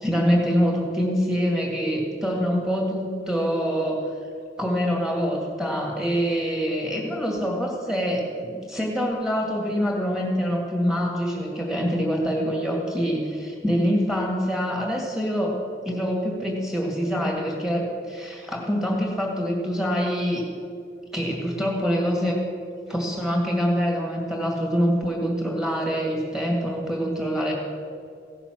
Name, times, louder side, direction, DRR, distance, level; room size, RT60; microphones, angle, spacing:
voice 1, 0.0-4.0 4.6-15.6 15.8-20.4 21.1-22.4 22.9-27.5, equal, 5° right, -1 dB, 2.2 m, -25 dB
16.5 x 7.0 x 6.1 m, 2.3 s
head